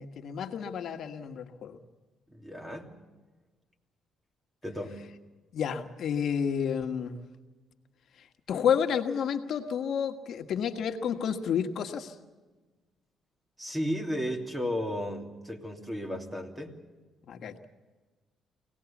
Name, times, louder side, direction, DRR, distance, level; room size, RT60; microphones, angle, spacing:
voice 1, 0.0-1.8 5.5-7.2 8.5-12.1 17.3-17.5, left 7 dB, 65° left, 6 dB, 1.4 m, -30 dB
voice 2, 2.3-3.0 4.6-5.0 13.6-16.8, equal, 15° right, 4 dB, 3.1 m, -34 dB
24.5 x 18.5 x 7.2 m, 1.3 s
cardioid pair, 90°, 0 cm